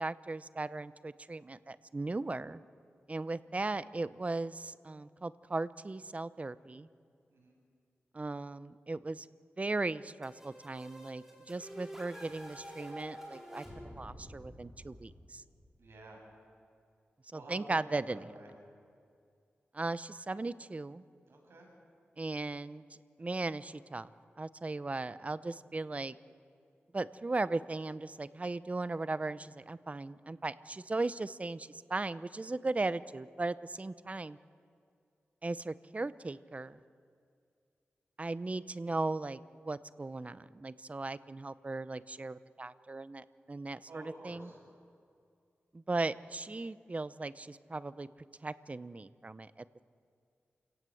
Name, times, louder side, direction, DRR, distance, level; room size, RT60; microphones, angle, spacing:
voice 1, 0.0-2.6 3.1-6.9 8.1-9.3 9.6-15.4 17.3-18.3 19.7-21.0 22.2-22.8 23.2-24.1 24.4-26.2 26.9-34.4 35.4-36.8 38.2-44.5 45.7-48.1 48.4-49.8, right 2 dB, 35° right, 15 dB, 0.8 m, -37 dB
sound 1, 10.2-15.9, equal, 10° right, 5.8 m, -49 dB
voice 2, 15.8-16.2 17.3-17.7 18.1-18.5 21.3-21.7 43.8-44.6, right 2 dB, 75° right, -1 dB, 8.0 m, -52 dB
28.5 x 17.5 x 7.8 m, 2.3 s
cardioid pair, 65°, 4 cm